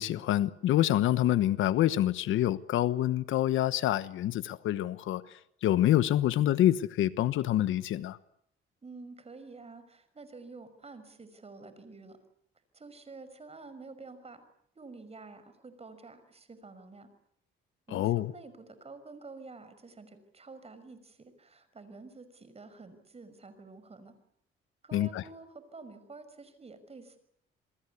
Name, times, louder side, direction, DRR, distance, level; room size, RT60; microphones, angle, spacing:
voice 1, 0.0-5.2 5.6-8.2 17.9-18.3 24.9-25.2, left 13 dB, 80° left, 1.2 m, -26 dB
voice 2, 8.8-12.2 12.7-14.4 14.7-17.1 17.9-24.1 24.8-27.2, right 3 dB, 30° right, 5.8 m, -49 dB
28.0 x 22.0 x 8.4 m
cardioid pair, 90°, 20 cm